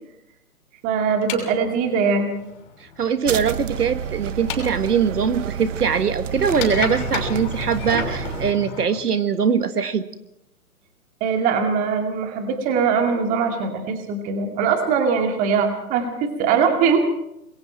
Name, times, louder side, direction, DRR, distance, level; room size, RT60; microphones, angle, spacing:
voice 1, 0.8-2.3 11.2-17.0, right 5 dB, 15° right, 5 dB, 2.3 m, -21 dB
sound 1, 1.1-5.2 6.4-8.9, left 6 dB, 30° left, 5.9 m, -32 dB
voice 2, 2.8-10.1, right 6 dB, 80° right, 11 dB, 1.7 m, -22 dB
sound 2, 3.2-8.5, right 8 dB, 55° right, 1.1 m, -30 dB
26.5 x 22.0 x 4.6 m, 0.84 s
hypercardioid pair, 150°, 46 cm